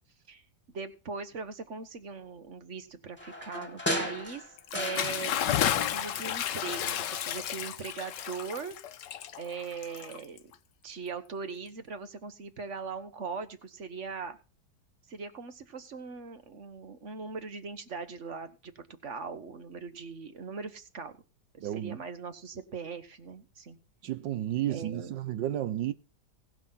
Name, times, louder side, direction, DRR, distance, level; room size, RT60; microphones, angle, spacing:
voice 1, 0.3-8.8 9.4-10.4 10.8-14.4 15.1-21.1 21.5-23.8 24.7-25.2, right 5 dB, 45° right, 1.5 m, -40 dB
sound 1, 3.2-5.6 5.9-7.0 7.3-7.4, left 1 dB, 5° left, 2.2 m, -36 dB
Bathtub (filling or washing) / Splash splatter, 4.6-10.5, left 10 dB, 75° left, 1.5 m, -32 dB
voice 2, 21.6-22.0 24.0-25.9, right 12 dB, 85° right, 1.5 m, -32 dB
18.5 x 6.3 x 5.6 m
omnidirectional pair, 1.9 m